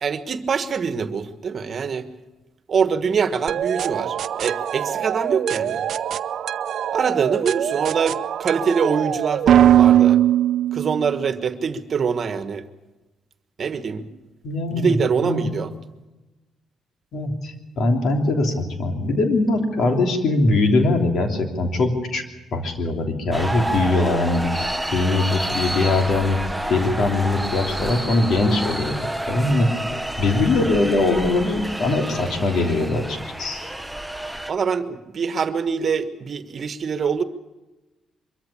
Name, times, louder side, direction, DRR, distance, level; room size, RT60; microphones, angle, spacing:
voice 1, 0.0-2.1 2.7-5.8 6.9-10.2 10.7-12.7 13.6-14.1 14.7-15.7 34.5-37.2, right 6 dB, 50° right, 10 dB, 1.4 m, -24 dB
sound 1, 3.5-11.3, right 11 dB, 65° right, 0.6 m, -21 dB
voice 2, 14.4-15.5 17.1-22.2 22.5-26.4 26.7-29.7 30.2-33.6, left 2 dB, 65° left, 4 dB, 3.2 m, -21 dB
sound 2, 23.3-34.5, right 1 dB, 5° right, 0.9 m, -29 dB
23.5 x 14.0 x 8.7 m, 1.1 s
cardioid pair, 90°, 0 cm